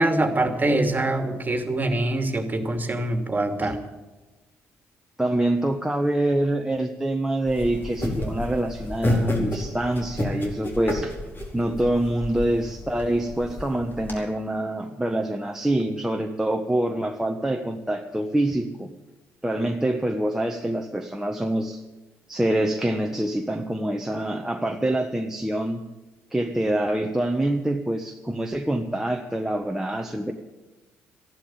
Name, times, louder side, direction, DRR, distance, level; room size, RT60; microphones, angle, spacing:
voice 1, 0.0-3.8, right 2 dB, 25° right, 7 dB, 2.6 m, -24 dB
voice 2, 5.2-11.1 11.5-18.9 19.4-21.8 22.3-25.8 26.3-30.3, right 1 dB, 10° right, 3 dB, 1.4 m, -25 dB
sound 1, 7.5-14.1, left 1 dB, 35° left, 4.7 m, -30 dB
14.0 x 11.5 x 8.9 m, 1.1 s
hypercardioid pair, 50°, 6 cm